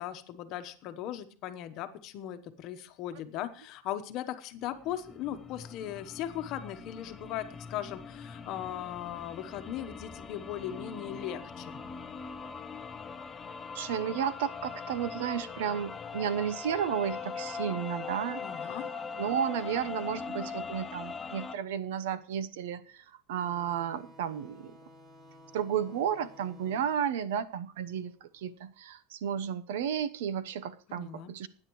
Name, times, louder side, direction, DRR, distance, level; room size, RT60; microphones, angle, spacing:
voice 1, 0.0-11.8 18.4-18.9 30.9-31.3, left 11 dB, 40° left, 9 dB, 1.1 m, -38 dB
sound 1, 4.6-21.6, left 5 dB, 15° left, 0.5 m, -41 dB
voice 2, 13.7-18.4 19.2-24.7 25.5-31.5, right 8 dB, 90° right, 14 dB, 0.9 m, -33 dB
sound 2, 23.3-28.5, left 1 dB, 25° right, 1.3 m, -55 dB
20.0 x 9.7 x 3.1 m, 0.43 s
supercardioid pair, 170°, 0 cm